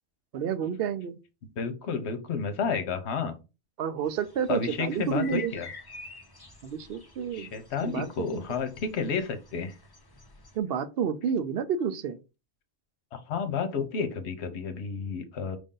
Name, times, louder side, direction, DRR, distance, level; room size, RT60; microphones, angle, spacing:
voice 1, 0.3-1.2 3.8-5.5 6.6-7.5 7.8-8.4 10.6-12.2, right 7 dB, 65° right, 0.7 m, -30 dB
voice 2, 1.6-3.4 4.5-5.7 7.3-9.7 13.1-15.6, left 5 dB, 75° left, 1.0 m, -31 dB
sound 1, 4.0-10.6, left 4 dB, 25° left, 0.6 m, -49 dB
5.1 x 2.6 x 3.7 m
omnidirectional pair, 1.2 m